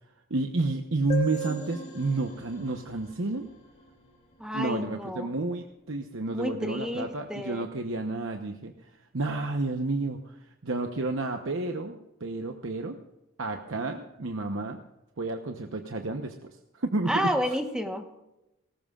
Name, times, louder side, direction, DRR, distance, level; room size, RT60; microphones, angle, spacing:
voice 1, 0.3-3.4 4.5-13.0 13.4-14.8 15.2-16.3 16.7-17.6, right 2 dB, 65° right, 4 dB, 1.0 m, -31 dB
sound 1, 1.1-4.6, right 3 dB, 30° left, 3.0 m, -38 dB
voice 2, 4.4-5.3 6.3-7.7 17.1-18.1, equal, 5° right, 4 dB, 1.1 m, -30 dB
20.0 x 18.0 x 2.5 m, 0.93 s
head